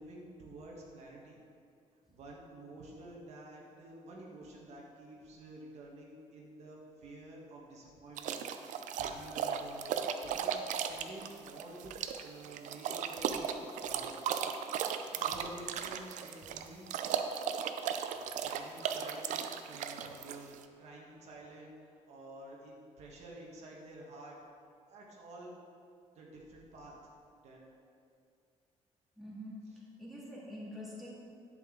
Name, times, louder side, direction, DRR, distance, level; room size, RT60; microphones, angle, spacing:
voice 1, 0.0-1.4 2.1-14.1 15.1-17.0 18.4-19.4 19.6-24.4 24.9-25.5 26.1-27.0 27.4-27.6, right 2 dB, 60° right, -3 dB, 1.6 m, -50 dB
sound 1, 8.2-20.6, right 8 dB, 80° right, 0.6 m, -36 dB
voice 2, 29.2-31.1, left 1 dB, ahead, -8 dB, 2.2 m, -46 dB
11.0 x 8.1 x 3.8 m, 2.4 s
cardioid pair, 175°, 13 cm